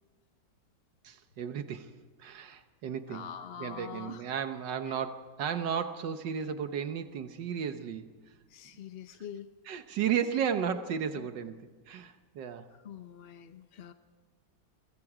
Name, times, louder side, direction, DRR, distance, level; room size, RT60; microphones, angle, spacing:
voice 1, 1.0-1.9 2.2-3.3 3.6-8.1 9.7-12.7, right 8 dB, 85° right, 8 dB, 1.7 m, -34 dB
voice 2, 3.1-4.3 4.8-5.0 8.5-9.5 10.7-10.9 11.1-11.3 12.7-13.9, left 8 dB, 45° left, 8 dB, 0.8 m, -44 dB
29.5 x 23.5 x 4.9 m, 1.4 s
omnidirectional pair, 1.9 m